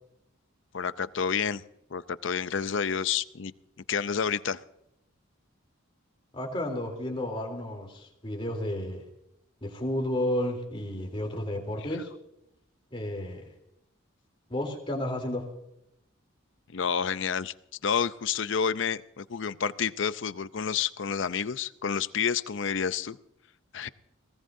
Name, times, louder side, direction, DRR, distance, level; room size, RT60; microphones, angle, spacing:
voice 1, 0.7-1.6 1.9-3.5 3.9-4.6 16.7-17.5 17.8-23.2 23.7-23.9, left 7 dB, 60° left, 15 dB, 0.6 m, -29 dB
voice 2, 6.3-9.0 9.6-12.1 12.9-13.4 14.5-15.5, left 1 dB, 25° left, 2 dB, 3.3 m, -32 dB
22.0 x 18.0 x 2.7 m, 0.82 s
head